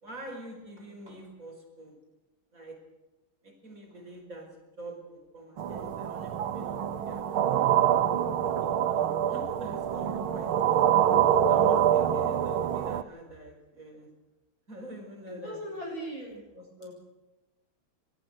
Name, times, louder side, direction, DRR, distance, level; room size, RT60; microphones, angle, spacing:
voice 1, 0.0-2.0 2.5-2.8 3.4-4.5 4.8-7.8 8.6-10.9 11.5-14.1 14.7-15.8 16.5-16.9, right 1 dB, 40° right, 3 dB, 5.5 m, -45 dB
sound 1, 5.6-13.0, right 10 dB, 80° right, 1.8 m, -25 dB
voice 2, 15.4-16.4, equal, 70° left, 0 dB, 8.2 m, -38 dB
25.5 x 19.0 x 6.4 m, 1.0 s
omnidirectional pair, 2.3 m